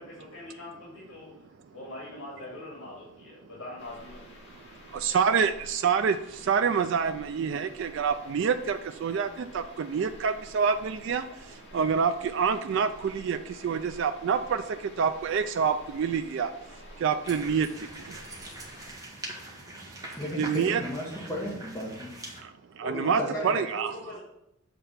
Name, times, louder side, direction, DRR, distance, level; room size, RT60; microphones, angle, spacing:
voice 1, 0.0-1.3 1.7-4.4 20.6-20.7 22.8-24.2, left 1 dB, 75° left, -5 dB, 2.3 m, -41 dB
sound 1, 3.8-18.9, equal, 50° left, 2.2 m, -50 dB
voice 2, 4.9-6.2 6.5-11.2 11.7-13.4 13.6-14.6 15.0-16.5 17.0-17.7 20.4-20.8 22.8-23.9, right 6 dB, 60° right, 9 dB, 0.3 m, -26 dB
sound 2, 17.2-22.4, right 2 dB, 15° right, 1.1 m, -43 dB
voice 3, 20.2-22.2 23.2-23.5, equal, 15° left, -6 dB, 1.2 m, -34 dB
7.6 x 3.4 x 5.6 m, 0.83 s
head